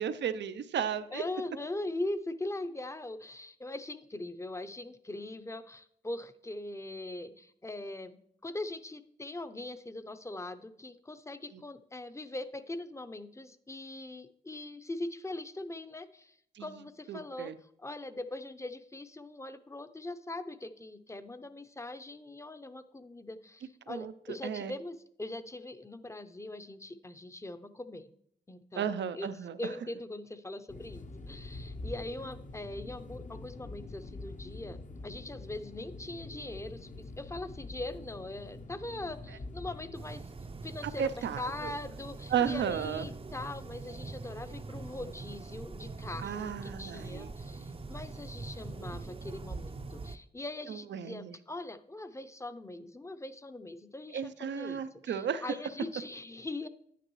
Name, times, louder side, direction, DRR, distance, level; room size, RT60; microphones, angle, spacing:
voice 1, 0.0-1.2 11.5-11.6 16.5-16.7 17.1-17.6 23.9-24.7 28.8-29.6 41.0-41.7 42.3-43.1 46.2-47.3 50.7-51.4 54.1-55.4, right 8 dB, 75° right, 12 dB, 0.6 m, -34 dB
voice 2, 1.1-16.3 16.6-17.5 17.8-28.1 28.5-28.9 29.1-29.3 29.6-34.8 35.0-40.3 40.6-56.7, left 2 dB, 15° left, 10 dB, 0.7 m, -41 dB
sound 1, 30.7-39.9, left 2 dB, 45° left, 0.9 m, -45 dB
sound 2, 39.9-50.2, right 3 dB, 30° right, 0.6 m, -43 dB
9.6 x 9.1 x 3.1 m, 0.70 s
cardioid pair, 50°, 18 cm